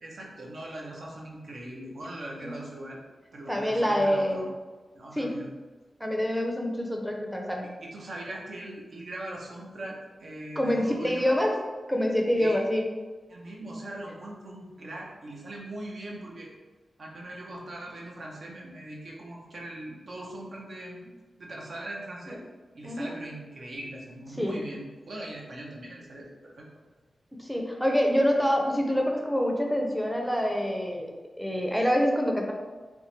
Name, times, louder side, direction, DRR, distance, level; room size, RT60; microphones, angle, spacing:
voice 1, 0.0-3.0 3.3-4.4 4.9-5.5 7.8-11.3 12.4-12.7 13.3-16.5 17.0-21.1 21.4-22.4 22.7-26.7, right 1 dB, 65° right, -2 dB, 0.8 m, -40 dB
voice 2, 3.5-4.5 5.2-5.3 6.0-7.7 10.6-11.6 11.9-12.9 22.8-23.1 24.4-24.6 27.3-31.1 31.4-32.5, equal, ahead, 1 dB, 0.6 m, -26 dB
3.5 x 3.0 x 3.2 m, 1.3 s
wide cardioid pair, 80°, 0 cm